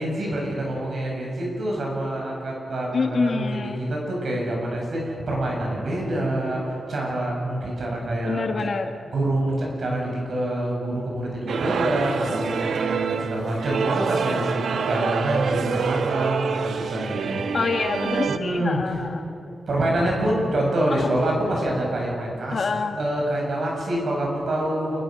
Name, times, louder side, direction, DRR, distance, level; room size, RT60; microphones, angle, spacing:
voice 1, 0.0-8.5 9.1-17.4 18.3-18.8 19.7-22.6 23.0-25.0, right 1 dB, 60° right, -1 dB, 7.8 m, -26 dB
voice 2, 2.9-3.8 8.2-9.0 17.5-19.3 20.9-21.1 22.5-23.0, left 4 dB, 50° left, 6 dB, 1.2 m, -26 dB
sound 1, 11.5-18.4, right 6 dB, 85° right, 1.0 m, -26 dB
28.0 x 21.0 x 6.7 m, 2.6 s
wide cardioid pair, 165°, 0 cm